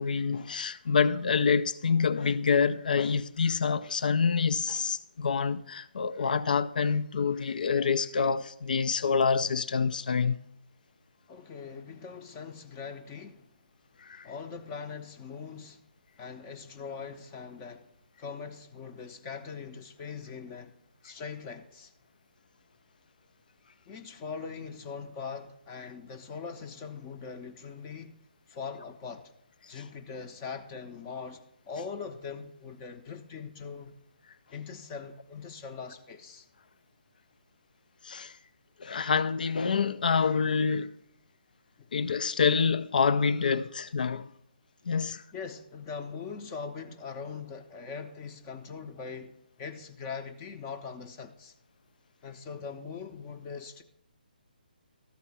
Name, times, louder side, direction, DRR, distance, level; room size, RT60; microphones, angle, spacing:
voice 1, 0.0-10.4 14.0-14.3 38.0-38.4 38.8-40.9 41.9-44.3 44.9-45.2, left 5 dB, 60° left, 0.4 m, -27 dB
voice 2, 11.3-13.5 14.2-15.8 16.2-17.9 18.2-20.8 21.0-21.9 23.9-28.1 28.5-29.3 29.7-34.0 34.5-36.5 41.8-41.9 45.3-51.5 52.2-53.8, left 5 dB, 20° left, 0.7 m, -41 dB
13.0 x 4.4 x 6.9 m
figure-of-eight pair, 145°, 5 cm